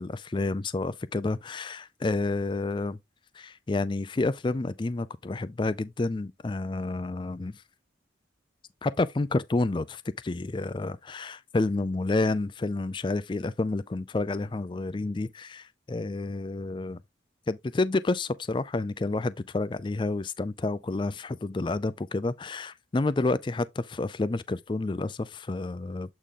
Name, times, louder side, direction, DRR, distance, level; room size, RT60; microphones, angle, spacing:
voice 1, 0.0-3.0 3.3-7.6 8.8-17.0 17.5-26.1, left 2 dB, 25° left, 0.4 m, -29 dB
8.4 x 3.6 x 3.6 m
head